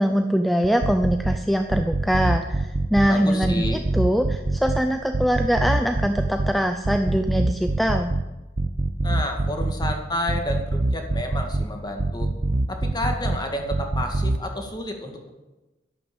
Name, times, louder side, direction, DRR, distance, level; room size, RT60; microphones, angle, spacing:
voice 1, 0.0-3.7 3.9-8.1, equal, ahead, 6 dB, 0.6 m, -22 dB
sound 1, 0.6-1.4 1.7-3.1 3.4-4.8 5.1-6.5 6.8-8.2 8.6-9.9 10.3-11.7 12.0-13.4 13.7-14.4, right 2 dB, 50° right, 0.8 m, -24 dB
voice 2, 3.1-3.8 9.0-12.3 12.7-15.3, left 1 dB, 25° left, 3 dB, 2.1 m, -30 dB
12.0 x 11.5 x 7.2 m, 1.1 s
head